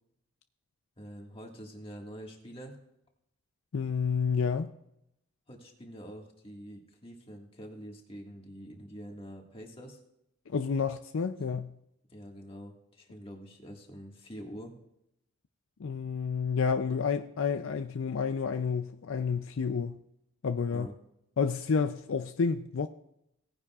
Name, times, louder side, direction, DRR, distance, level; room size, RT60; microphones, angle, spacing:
voice 1, 1.0-2.8 5.5-10.0 12.1-14.8 20.7-21.0, equal, 25° left, 1.8 m, -46 dB
voice 2, 3.7-4.7 10.5-11.7 15.8-20.0 20.4-20.9 21.4-22.9, left 5 dB, 65° left, 0.4 m, -30 dB
18.0 x 9.9 x 2.4 m
head